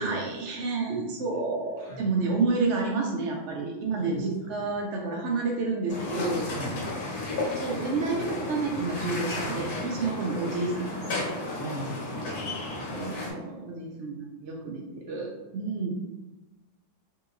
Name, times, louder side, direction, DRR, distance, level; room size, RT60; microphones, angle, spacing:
voice 1, 0.0-6.5 7.5-11.4 12.9-15.9, right 3 dB, 85° right, 0 dB, 0.6 m, -30 dB
voice 2, 1.8-2.1 4.0-4.7 6.5-6.8 11.6-12.9, right 1 dB, 15° right, -10 dB, 1.0 m, -38 dB
sound 1, 5.9-13.3, left 2 dB, 80° left, 1.4 m, -33 dB
3.6 x 2.8 x 2.4 m, 1.1 s
omnidirectional pair, 1.8 m